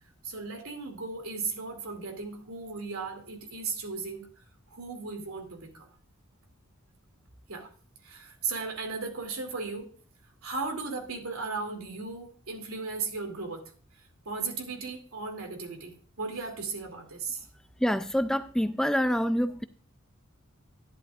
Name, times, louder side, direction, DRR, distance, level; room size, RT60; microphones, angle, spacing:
voice 1, 0.2-4.3 4.7-5.9 7.5-7.7 8.0-9.9 10.4-13.7 14.2-17.4, right 4 dB, 90° right, 2.7 m, -36 dB
voice 2, 17.8-19.6, equal, 5° left, 0.4 m, -26 dB
11.5 x 11.0 x 2.5 m
head